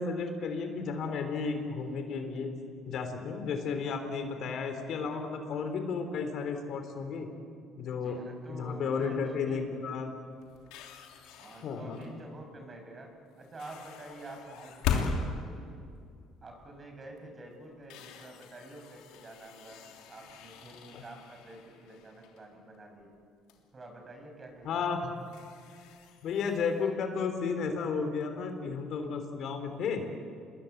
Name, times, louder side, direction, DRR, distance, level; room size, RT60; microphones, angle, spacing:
voice 1, 0.0-2.5 2.9-7.3 7.8-8.2 8.5-10.1 11.6-12.0 20.9-21.0 24.6-25.1 26.2-30.1, left 5 dB, 60° left, 6 dB, 3.3 m, -33 dB
voice 2, 8.0-9.7 11.4-15.8 16.4-19.8 20.1-23.1 23.7-25.0, right 2 dB, 30° right, 3 dB, 6.3 m, -48 dB
sound 1, 8.3-8.8 9.3-9.5 9.8-12.4 13.4-16.8 17.2-17.3 17.7-23.2 23.5-23.6 24.5-24.6 25.0-26.9, left 5 dB, 90° left, 2.9 m, -40 dB
26.5 x 21.5 x 8.0 m, 2.3 s
cardioid pair, 110°, 0 cm